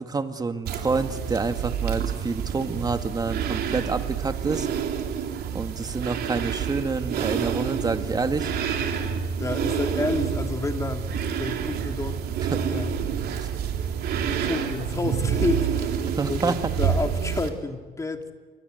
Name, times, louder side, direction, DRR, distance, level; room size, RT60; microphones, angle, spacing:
voice 1, 0.0-4.7 5.5-8.5 12.5-12.6 13.4-13.5 16.2-16.5, right 4 dB, 25° right, 8 dB, 2.0 m, -28 dB
sound 1, 0.6-17.5, right 8 dB, 70° right, 3.4 m, -28 dB
voice 2, 9.4-12.2 12.7-13.0 14.3-16.0 16.3-18.3, left 3 dB, 20° left, 5 dB, 2.8 m, -30 dB
27.0 x 23.5 x 8.0 m, 1.5 s
cardioid pair, 110°, 17 cm